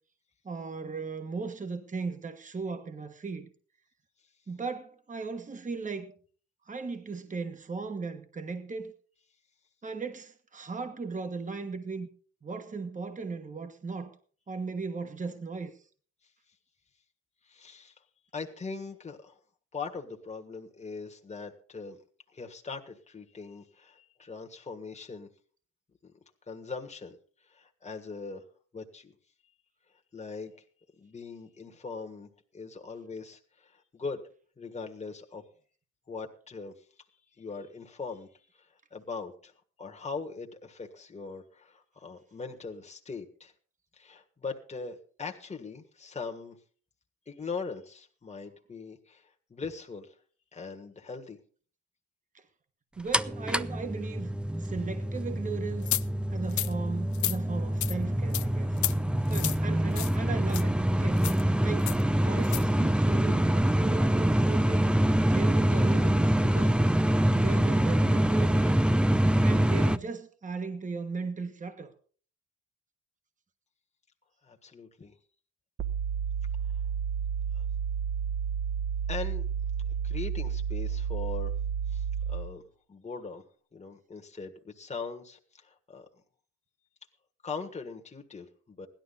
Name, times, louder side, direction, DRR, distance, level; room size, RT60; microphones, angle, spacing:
voice 1, 0.4-3.5 4.5-6.1 6.7-8.9 9.8-12.1 12.4-14.1 14.5-15.7 52.3-52.4 53.0-55.9 56.3-58.7 59.3-62.0 62.2-64.9 65.3-66.9 67.3-68.8 69.4-71.9, right 4 dB, 25° right, 1.3 m, -37 dB
voice 2, 17.4-17.9 18.3-19.4 19.7-22.0 22.3-25.3 26.0-26.1 26.5-27.2 27.5-28.4 28.7-29.1 30.1-30.6 31.0-34.2 34.6-35.4 36.1-36.7 37.4-38.3 38.5-39.5 39.8-43.5 43.9-46.6 47.3-50.1 50.5-51.4 74.4-75.1 77.5-77.7 79.1-79.4 80.0-81.5 81.9-82.6 82.9-83.4 83.7-86.1 87.4-88.9, left 4 dB, 20° left, 1.6 m, -41 dB
sound 1, 53.1-70.0, right 1 dB, 5° right, 0.5 m, -25 dB
sound 2, 55.9-56.0 56.5-56.7 57.1-57.4 57.8-57.9 58.3-58.5 58.8-58.9 59.3-59.6 59.9-60.2 60.5-60.6 61.2-61.4 61.9-62.0 62.4-62.6, left 14 dB, 70° left, 0.7 m, -31 dB
sound 3, 75.8-82.6, right 7 dB, 45° right, 1.3 m, -31 dB
16.0 x 12.0 x 4.1 m
cardioid pair, 90°, 30 cm